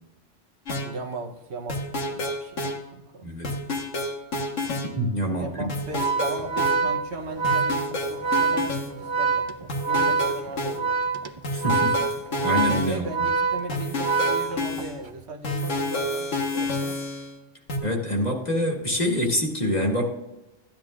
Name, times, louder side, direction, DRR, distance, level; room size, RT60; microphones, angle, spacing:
sound 1, 0.7-0.9 1.7-2.8 3.4-4.9 5.7-6.8 7.4-8.9 9.7-10.8 11.4-13.0 13.7-15.0 15.4-17.3 17.7-17.8, left 1 dB, 90° left, 1.8 m, -29 dB
voice 1, 0.8-3.4 5.2-11.0 12.9-17.0, right 2 dB, 65° right, 2 dB, 1.2 m, -37 dB
voice 2, 5.0-5.7 11.5-12.0 12.4-13.1 17.8-20.1, equal, 35° left, 0 dB, 1.8 m, -25 dB
Organ, 5.9-15.0, right 4 dB, 45° right, 0.4 m, -25 dB
14.0 x 10.5 x 2.5 m, 0.98 s
omnidirectional pair, 1.2 m